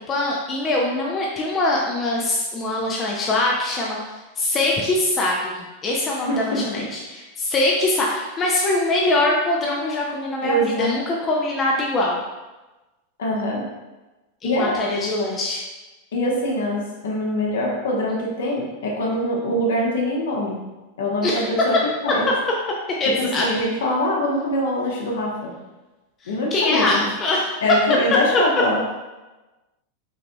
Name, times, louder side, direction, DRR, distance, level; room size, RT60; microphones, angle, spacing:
voice 1, 0.1-4.0 4.4-12.2 14.4-15.6 21.2-21.5 23.0-23.5 26.2-27.5, left 2 dB, 25° left, -2 dB, 0.6 m, -23 dB
voice 2, 6.2-6.8 10.4-10.9 13.2-13.6 14.4-14.7 16.1-20.6 21.0-21.7 22.0-22.3 23.0-25.5 26.3-27.0 27.6-28.8, left 1 dB, 60° left, -2 dB, 1.2 m, -23 dB
6.1 x 3.8 x 2.3 m, 1.1 s
figure-of-eight pair, 90°, 0 cm